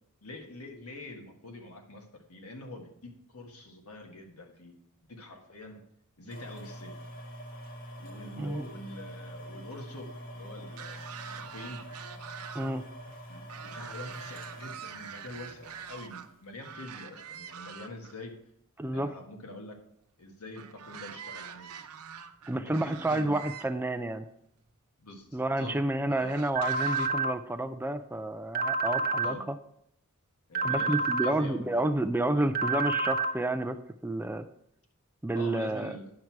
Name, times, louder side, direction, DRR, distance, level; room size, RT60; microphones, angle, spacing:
voice 1, 0.2-4.7 5.1-5.8 6.2-7.0 8.0-11.0 11.4-11.9 13.3-18.4 18.9-19.8 20.2-21.7 22.5-23.4 25.0-25.8 26.1-26.3 29.2-29.5 30.5-32.5 35.3-36.1, left 2 dB, 80° left, 3 dB, 1.6 m, -45 dB
sound 1, 6.3-16.3 16.9-17.0, equal, 45° left, 1.3 m, -45 dB
sound 2, 10.7-12.7 13.0-16.3 16.6-18.1 20.5-23.7 24.6-24.7 26.2-27.1, right 7 dB, 85° right, 0.7 m, -44 dB
voice 2, 18.8-19.1 22.5-24.3 25.3-29.5 30.6-33.8 34.0-34.5 35.2-36.0, right 1 dB, 10° right, 10 dB, 0.3 m, -30 dB
sound 3, 26.6-27.3 28.6-29.3 30.6-31.3 32.6-33.3, right 3 dB, 40° right, 0.7 m, -28 dB
9.4 x 6.1 x 4.6 m, 0.73 s
head